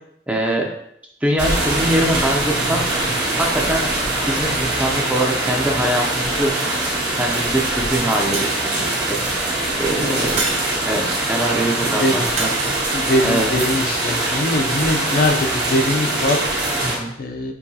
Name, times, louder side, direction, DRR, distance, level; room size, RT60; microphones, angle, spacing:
voice 1, 0.3-0.7 1.2-2.9 3.4-3.9 4.3-6.5 7.2-9.2 9.8-10.4 10.9-12.7 13.2-13.5 16.8-17.1, right 1 dB, 10° right, -1 dB, 0.5 m, -23 dB
sound 1, 1.4-17.0, right 2 dB, 75° right, 1.5 m, -22 dB
Shatter, 8.3-9.1 10.4-11.2 12.4-13.2, right 3 dB, 40° right, 0.8 m, -28 dB
voice 2, 9.9-10.5 11.9-12.2 12.9-16.9 17.2-17.5, left 1 dB, 55° left, 5 dB, 0.5 m, -22 dB
4.6 x 3.0 x 2.7 m, 0.73 s
head